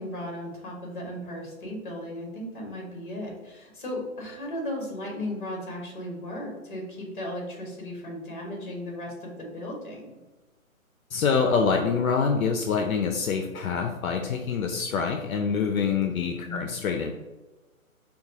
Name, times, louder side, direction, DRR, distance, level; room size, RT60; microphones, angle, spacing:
voice 1, 0.0-10.2 16.4-16.6, left 1 dB, 35° left, 0 dB, 1.1 m, -36 dB
voice 2, 11.1-17.1, left 5 dB, 70° left, 4 dB, 0.5 m, -25 dB
4.9 x 2.3 x 2.7 m, 1.1 s
hypercardioid pair, 170°, 43 cm